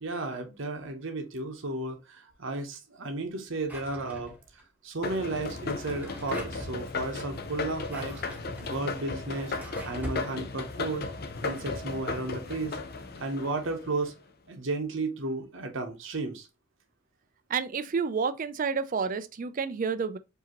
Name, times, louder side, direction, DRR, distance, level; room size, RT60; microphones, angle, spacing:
voice 1, 0.0-4.3 4.8-8.1 8.6-9.5 9.8-11.0 11.4-12.8 13.2-14.1 14.5-16.5, right 2 dB, 60° right, 0.9 m, -33 dB
Drawer open or close, 3.6-4.6 5.7-6.8 7.6-10.3, right 1 dB, 5° right, 0.7 m, -43 dB
sound 1, 5.0-14.1, left 4 dB, 45° left, 0.5 m, -36 dB
voice 2, 17.5-20.2, right 5 dB, 40° right, 0.3 m, -29 dB
4.9 x 2.8 x 2.9 m
head